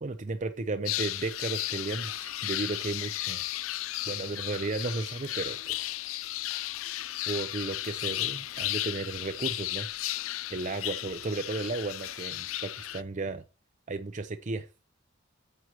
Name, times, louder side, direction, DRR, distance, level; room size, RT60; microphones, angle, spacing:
voice 1, 0.0-3.4 4.1-5.9 7.2-9.9 10.5-13.4 13.9-14.7, right 3 dB, 40° right, 0.6 m, -34 dB
sound 1, 0.9-13.0, left 15 dB, 90° left, 0.4 m, -34 dB
9.4 x 7.6 x 2.9 m
head